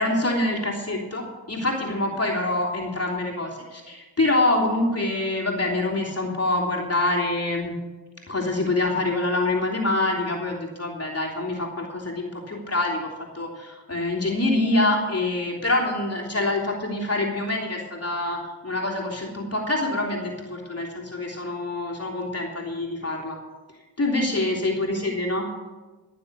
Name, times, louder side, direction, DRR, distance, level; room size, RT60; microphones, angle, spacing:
voice 1, 0.0-7.7 8.3-23.4 24.0-25.5, left 2 dB, 35° left, -1 dB, 3.2 m, -25 dB
14.5 x 7.2 x 6.8 m, 1.2 s
supercardioid pair, 55°, 42 cm